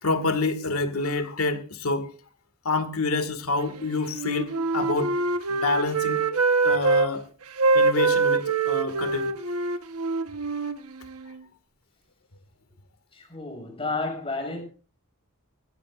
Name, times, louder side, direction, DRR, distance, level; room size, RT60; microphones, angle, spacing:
voice 1, 0.0-2.1 2.6-5.2 5.5-6.2 6.6-7.3 7.7-9.3, left 3 dB, 80° left, 2.0 m, -27 dB
Wind instrument woodwind instrument, 4.1-7.1 7.6-11.4, right 3 dB, 85° right, 1.2 m, -24 dB
voice 2, 13.1-14.6, left 3 dB, 25° left, 6.1 m, -31 dB
20.5 x 15.5 x 2.5 m
head